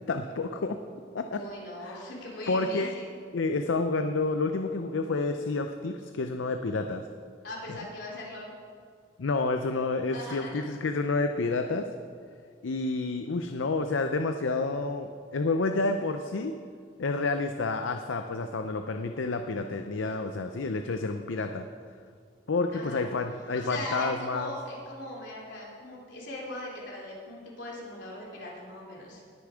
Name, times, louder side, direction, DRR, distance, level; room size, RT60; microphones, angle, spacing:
voice 1, 0.1-0.8 1.1-1.4 1.9-2.0 2.5-2.9 3.3-7.1 7.7-7.8 9.2-11.9 12.6-16.5 17.0-21.7 22.5-24.5, left 3 dB, 85° left, 6 dB, 0.6 m, -29 dB
voice 2, 1.4-3.1 7.4-8.5 10.1-10.6 22.7-23.0 23.5-29.2, left 1 dB, 70° left, -3 dB, 3.2 m, -39 dB
19.5 x 6.9 x 5.0 m, 2.1 s
head